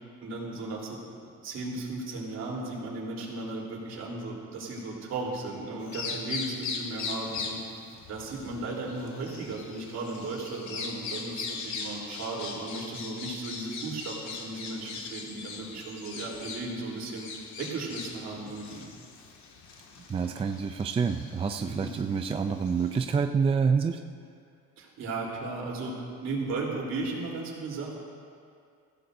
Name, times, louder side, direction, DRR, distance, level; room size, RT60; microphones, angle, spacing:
voice 1, 0.2-1.0 1.4-7.6 8.1-17.3 17.6-18.9 21.6-21.9 24.8-28.0, right 3 dB, 60° right, -3 dB, 3.6 m, -35 dB
Bird vocalization bird call bird song, 5.8-23.2, left 4 dB, 70° left, 2.0 m, -40 dB
voice 2, 20.1-24.0, right 5 dB, 20° right, 6 dB, 0.4 m, -27 dB
23.0 x 15.5 x 2.7 m, 2.3 s
cardioid pair, 135°, 30 cm